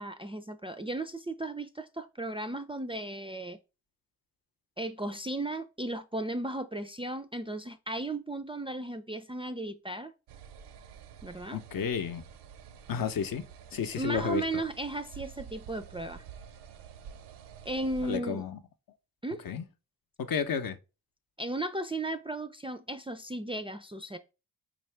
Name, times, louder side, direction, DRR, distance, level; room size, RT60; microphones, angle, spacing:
voice 1, 0.0-3.6 4.8-10.1 11.2-11.6 13.9-16.2 17.6-18.4 19.2-19.4 21.4-24.2, right 2 dB, 15° right, 0.4 m, -35 dB
sound 1, 10.3-18.2, right 7 dB, 75° right, 0.6 m, -49 dB
voice 2, 11.5-12.2 12.9-13.4 13.7-14.4 18.0-18.6 19.4-19.7 20.2-20.8, left 6 dB, 55° left, 0.7 m, -31 dB
4.7 x 2.6 x 3.2 m
supercardioid pair, 50°, 42 cm